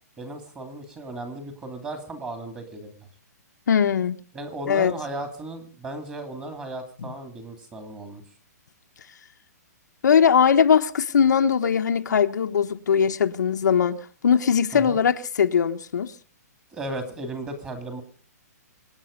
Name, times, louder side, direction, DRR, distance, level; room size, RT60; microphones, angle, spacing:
voice 1, 0.2-3.1 4.3-8.2 14.7-15.0 16.7-18.0, right 2 dB, 10° right, 2.5 m, -35 dB
voice 2, 3.7-4.2 4.7-4.9 10.0-16.1, left 7 dB, 90° left, 1.2 m, -20 dB
25.0 x 9.4 x 5.2 m
hypercardioid pair, 165°, 9 cm